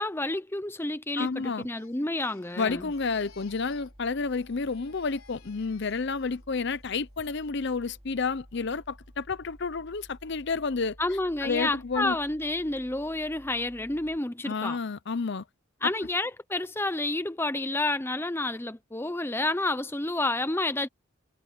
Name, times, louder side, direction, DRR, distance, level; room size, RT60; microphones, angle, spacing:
voice 1, 0.0-2.9 11.0-14.8 15.8-20.9, left 2 dB, 10° left, 0.7 m, -30 dB
voice 2, 1.2-1.7 2.6-11.0 11.4-12.2 14.4-15.4 15.8-15.9, left 4 dB, 55° left, 0.6 m, -30 dB
Crying sobbing, 1.4-4.0 4.2-6.4 6.8-7.2, left 7 dB, 85° left, 4.6 m, -58 dB
sound 1, 2.7-14.2, equal, 30° right, 2.9 m, -53 dB
head